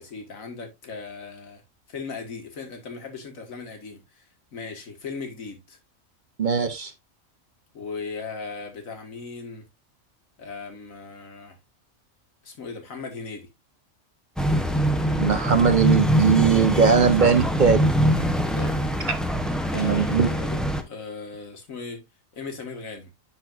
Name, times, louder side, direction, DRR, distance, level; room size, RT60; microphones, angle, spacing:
voice 1, 0.0-1.6 1.9-5.8 7.7-9.7 10.4-11.6 12.4-13.5 18.5-18.8 19.7-20.6 20.9-22.1 22.3-23.1, left 4 dB, 75° left, 2.0 m, -38 dB
voice 2, 6.4-6.9 15.2-17.9 19.7-20.3, right 6 dB, 40° right, 0.9 m, -20 dB
sound 1, 14.4-20.8, equal, ahead, 0.5 m, -23 dB
10.5 x 4.4 x 2.5 m
omnidirectional pair, 1.4 m